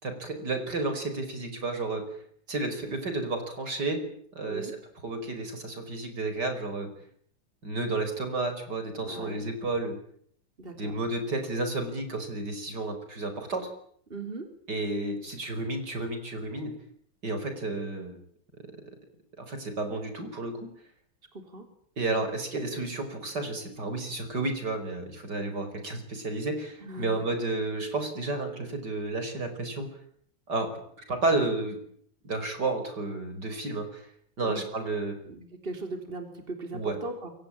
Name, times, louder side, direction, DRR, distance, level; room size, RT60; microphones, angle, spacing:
voice 1, 0.0-2.0 2.5-4.0 4.3-4.7 5.0-6.9 7.6-10.0 10.8-13.7 14.7-16.7 17.2-18.2 19.4-20.7 22.0-29.9 30.5-30.7 31.0-31.8 32.2-34.1 34.4-35.2 36.7-37.0, right 2 dB, 55° right, 7 dB, 5.6 m, -31 dB
voice 2, 9.0-9.4 10.6-11.0 14.1-14.5 21.3-21.7 26.8-27.2 34.4-34.6 35.3-37.3, right 2 dB, 30° right, 6 dB, 4.0 m, -38 dB
28.0 x 23.5 x 8.8 m, 0.65 s
omnidirectional pair, 2.1 m